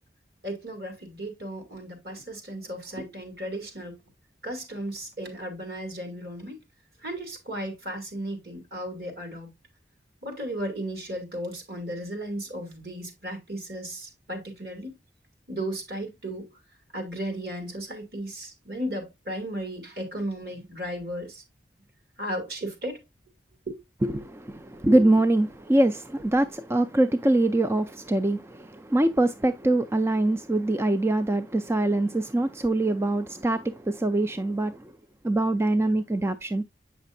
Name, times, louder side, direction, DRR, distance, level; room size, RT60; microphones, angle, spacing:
voice 1, 0.4-4.0 4.4-6.6 7.0-9.5 10.2-14.9 15.5-16.5 16.9-21.4 22.2-23.0 23.7-23.8, right 1 dB, 60° right, 2.7 m, -35 dB
voice 2, 24.0-34.8 35.2-36.6, right 1 dB, 15° right, 0.3 m, -24 dB
8.1 x 5.9 x 2.6 m
head